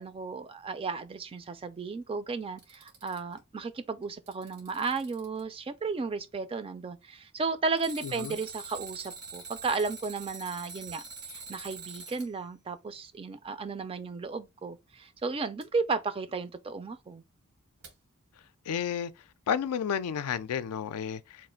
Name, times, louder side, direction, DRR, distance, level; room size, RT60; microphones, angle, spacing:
voice 1, 0.0-11.0 11.3-17.2, right 4 dB, 25° right, 0.3 m, -34 dB
Alarm, 2.4-3.4 4.0-5.4 7.8-12.3 15.6-15.7 17.8-17.9, right 4 dB, 85° right, 1.3 m, -44 dB
voice 2, 8.0-8.4 18.7-19.1 19.5-21.5, left 8 dB, 80° left, 0.4 m, -32 dB
3.0 x 2.4 x 4.3 m
head